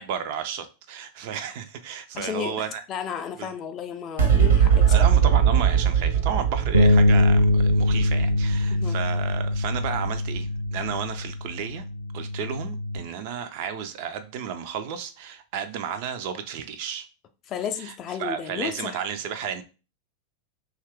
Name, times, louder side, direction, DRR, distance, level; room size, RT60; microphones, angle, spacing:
voice 1, 0.0-2.8 3.4-3.5 4.9-11.8 12.1-17.1 17.8-17.9 18.2-19.6, right 8 dB, 50° right, 0.4 m, -32 dB
voice 2, 2.2-2.5 2.9-5.1 8.7-9.0 17.5-19.0, left 8 dB, 30° left, 0.4 m, -33 dB
sound 1, 4.2-10.9, right 8 dB, 65° right, 0.8 m, -22 dB
Bass guitar, 6.7-13.0, left 1 dB, 85° left, 0.6 m, -23 dB
2.7 x 2.3 x 3.4 m
figure-of-eight pair, 90°, 0 cm